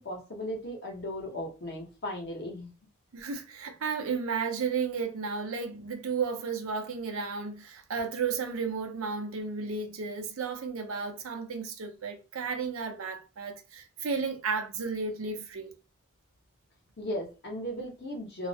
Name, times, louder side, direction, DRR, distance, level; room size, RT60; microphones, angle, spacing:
voice 1, 0.0-2.7 17.0-18.5, equal, 50° left, 0.8 m, -36 dB
voice 2, 3.1-15.7, right 5 dB, 75° right, 0.6 m, -33 dB
2.3 x 2.0 x 2.7 m
head